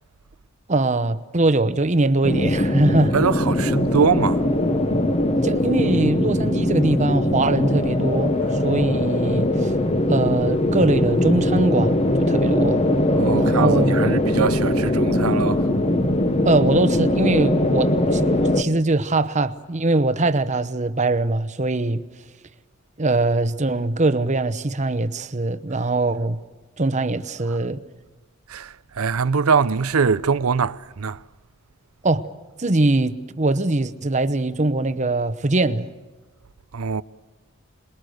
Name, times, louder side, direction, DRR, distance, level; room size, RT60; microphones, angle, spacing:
voice 1, 0.7-3.1 5.4-8.3 8.6-9.7 10.1-12.8 13.3-14.1 16.4-22.0 23.0-26.4 26.8-27.8 32.0-32.3 32.6-35.9, right 2 dB, 35° right, 0.9 m, -22 dB
sound 1, 2.2-18.6, left 1 dB, 30° left, 1.0 m, -21 dB
voice 2, 3.1-4.5 13.1-15.7 27.5-27.6 28.5-31.2 36.7-37.0, right 5 dB, 85° right, 0.7 m, -22 dB
27.5 x 21.5 x 6.5 m
head